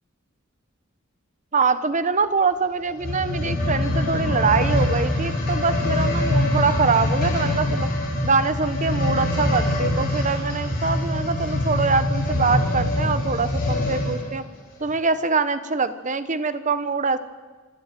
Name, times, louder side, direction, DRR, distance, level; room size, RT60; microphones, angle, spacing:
voice 1, 1.5-7.9 8.2-14.5 14.8-17.2, right 4 dB, 35° right, 12 dB, 1.1 m, -24 dB
sound 1, 2.9-14.3 14.9-15.0, left 1 dB, 50° left, 6.2 m, -24 dB
26.5 x 11.5 x 9.2 m, 1.4 s
head